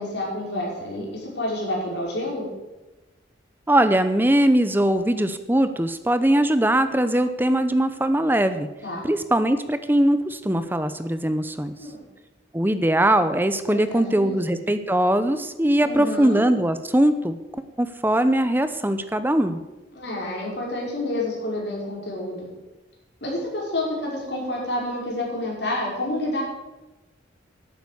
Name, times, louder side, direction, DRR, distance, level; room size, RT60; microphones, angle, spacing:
voice 1, 0.0-2.5 8.8-9.1 11.8-12.0 13.7-14.5 15.8-16.4 19.9-22.5 23.2-26.4, left 1 dB, 60° left, -3 dB, 5.7 m, -29 dB
voice 2, 3.7-8.7 9.0-11.7 12.5-17.4 17.8-19.6, right 1 dB, 10° right, 11 dB, 0.7 m, -21 dB
11.5 x 9.0 x 9.7 m, 1.1 s
head